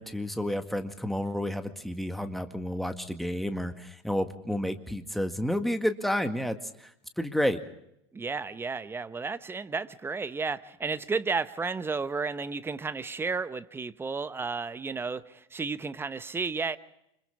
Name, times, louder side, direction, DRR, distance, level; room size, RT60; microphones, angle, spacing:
voice 1, 0.0-6.9 7.2-7.6, equal, ahead, 7 dB, 2.0 m, -30 dB
voice 2, 8.1-16.8, right 4 dB, 15° right, 13 dB, 1.0 m, -32 dB
30.0 x 26.0 x 3.6 m, 0.79 s
figure-of-eight pair, 80°, 15 cm